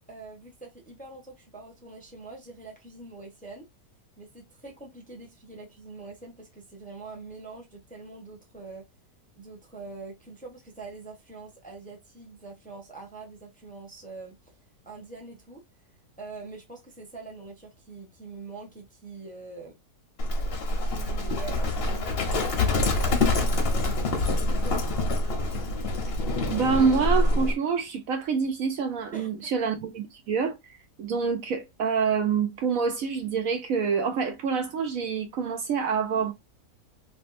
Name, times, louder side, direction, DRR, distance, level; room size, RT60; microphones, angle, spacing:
voice 1, 0.1-3.7 4.2-8.9 9.4-14.5 14.8-15.6 16.2-19.8 20.8-23.9 24.5-24.8 29.1-29.5, right 3 dB, 5° left, 0.8 m, -44 dB
Livestock farm animals working animals, 20.2-27.5, left 2 dB, 45° left, 0.9 m, -25 dB
voice 2, 26.5-30.7 31.0-36.3, right 6 dB, 65° right, 1.0 m, -26 dB
3.2 x 2.8 x 2.5 m
omnidirectional pair, 1.7 m